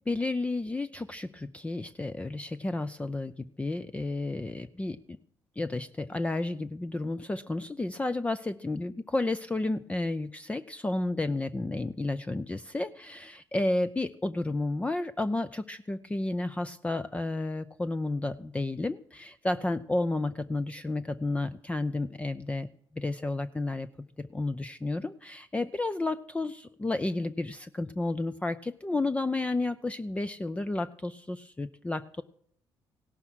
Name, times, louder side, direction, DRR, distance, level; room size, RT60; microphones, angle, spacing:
voice 1, 0.1-5.2 5.6-22.7 22.9-23.9 24.2-32.2, left 2 dB, 15° left, 12 dB, 0.5 m, -32 dB
16.5 x 11.5 x 6.3 m, 0.65 s
cardioid pair, 90°, 8 cm